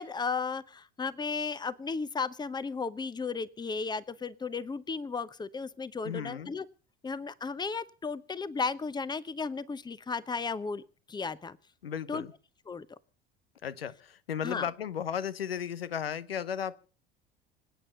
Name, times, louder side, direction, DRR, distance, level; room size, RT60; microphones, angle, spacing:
voice 1, 0.0-6.6 7.0-10.8 11.1-11.6 12.1-12.3 12.7-12.9 14.4-14.7, left 4 dB, 15° left, 18 dB, 0.9 m, -34 dB
voice 2, 6.0-6.5 11.8-12.3 13.6-16.8, left 8 dB, 80° left, 16 dB, 0.9 m, -35 dB
26.0 x 9.1 x 5.6 m, 0.38 s
figure-of-eight pair, 70°, 29 cm